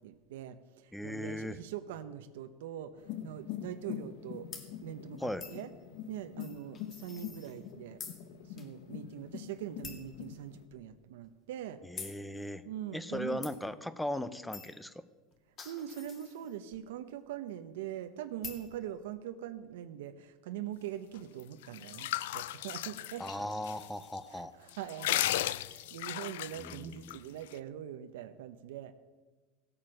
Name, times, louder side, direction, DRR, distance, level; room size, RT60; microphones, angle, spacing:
voice 1, 0.0-4.5 4.8-5.7 6.1-8.0 8.4-11.8 12.6-13.4 15.6-23.2 24.3-28.9, right 11 dB, 90° right, 9 dB, 0.8 m, -43 dB
voice 2, 0.9-1.6 5.2-5.4 11.9-12.6 12.9-14.9 23.2-24.5 26.6-27.2, left 1 dB, 5° left, 14 dB, 0.5 m, -38 dB
sound 1, 3.0-10.7, left 11 dB, 55° left, 1.1 m, -45 dB
sound 2, 4.5-4.7 5.4-5.6 6.4-7.7 8.0-8.2 8.6-8.7 9.1-9.2 9.8-10.1 10.7-10.8 12.0-12.2 13.4-13.5 14.5-14.8 15.3-16.7 18.4-18.7, left 5 dB, 25° left, 2.2 m, -46 dB
sound 3, 21.4-23.8 24.2-24.3 24.7-27.2, left 15 dB, 85° left, 0.4 m, -35 dB
17.0 x 8.8 x 6.5 m, 1.3 s
supercardioid pair, 165°, 0 cm